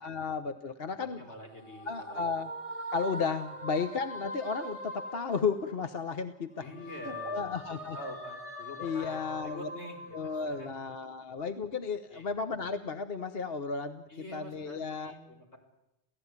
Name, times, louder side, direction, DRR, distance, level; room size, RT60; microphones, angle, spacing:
voice 1, 0.0-1.2 1.9-2.5 2.9-6.7 7.0-8.0 8.8-9.7 10.1-14.0 14.3-15.1, left 5 dB, 60° left, 9 dB, 1.3 m, -34 dB
voice 2, 1.0-2.3 6.6-10.8 12.1-12.3 14.1-15.6, equal, 85° left, 3 dB, 5.6 m, -46 dB
sound 1, 1.2-6.2 6.5-11.3, equal, 30° left, 5.5 m, -43 dB
28.0 x 16.5 x 9.7 m, 0.90 s
omnidirectional pair, 1.1 m